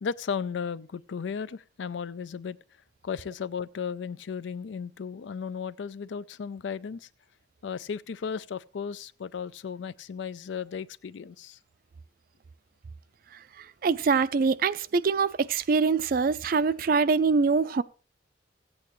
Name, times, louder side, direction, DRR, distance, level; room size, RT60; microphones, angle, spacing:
voice 1, 0.0-2.6 3.0-7.1 7.6-11.6, left 6 dB, 85° left, 0.4 m, -35 dB
voice 2, 13.6-17.8, right 4 dB, 55° right, 0.4 m, -24 dB
15.5 x 8.8 x 3.1 m
head